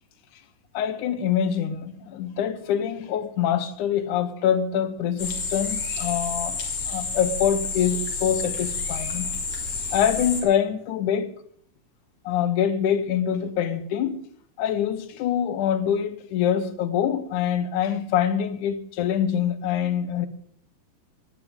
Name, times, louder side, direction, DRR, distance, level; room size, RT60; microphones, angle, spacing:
voice 1, 0.7-6.6 6.9-9.3 9.9-11.4 12.3-14.3 14.6-20.3, left 9 dB, 70° left, 2.4 m, -25 dB
sound 1, 5.2-10.4, left 4 dB, 45° left, 3.3 m, -30 dB
18.0 x 16.0 x 3.7 m
omnidirectional pair, 3.8 m